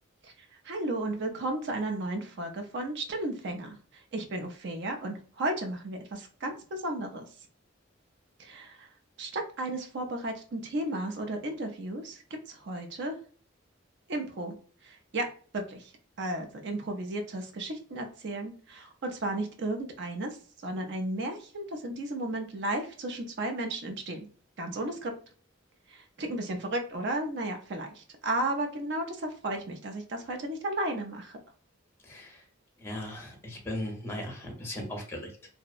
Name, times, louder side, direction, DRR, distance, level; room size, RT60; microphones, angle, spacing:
voice 1, 0.6-7.3 8.4-8.9 9.2-13.2 14.1-14.5 14.8-15.3 15.5-15.9 16.2-20.3 20.6-24.3 24.6-25.1 25.9-31.4, right 1 dB, 60° right, 4 dB, 0.5 m, -34 dB
voice 2, 32.0-32.4 32.8-35.3, left 1 dB, 10° left, 1 dB, 0.6 m, -37 dB
2.6 x 2.0 x 2.3 m, 0.42 s
head